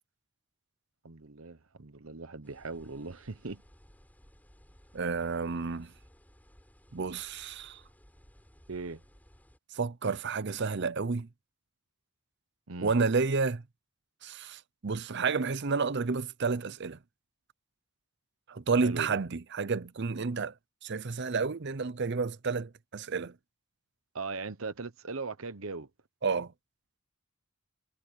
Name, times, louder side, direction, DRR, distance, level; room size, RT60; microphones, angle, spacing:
voice 1, 1.0-3.6 8.7-9.0 12.7-12.9 18.8-19.2 24.1-25.9, right 3 dB, 70° right, 1.0 m, -39 dB
sound 1, 2.4-9.6, equal, 5° left, 7.9 m, -59 dB
voice 2, 4.9-5.9 6.9-7.8 9.7-11.3 12.8-13.6 14.2-17.0 18.5-20.5 20.8-23.3 26.2-26.5, right 4 dB, 50° right, 0.7 m, -30 dB
head